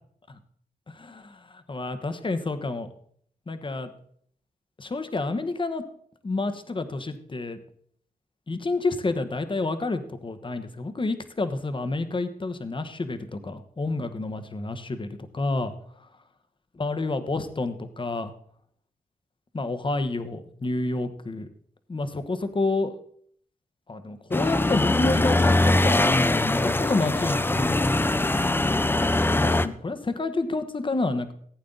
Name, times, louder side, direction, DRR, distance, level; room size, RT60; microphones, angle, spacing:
voice 1, 0.9-2.9 3.5-3.9 4.8-5.8 6.2-7.6 8.5-15.7 16.8-18.3 19.5-21.5 21.9-22.9 23.9-27.8 29.3-31.3, left 3 dB, 35° left, 10 dB, 1.1 m, -29 dB
sound 1, 24.3-29.7, left 2 dB, 15° left, 0.5 m, -22 dB
15.5 x 8.5 x 3.9 m, 0.62 s
wide cardioid pair, 90°, 15 cm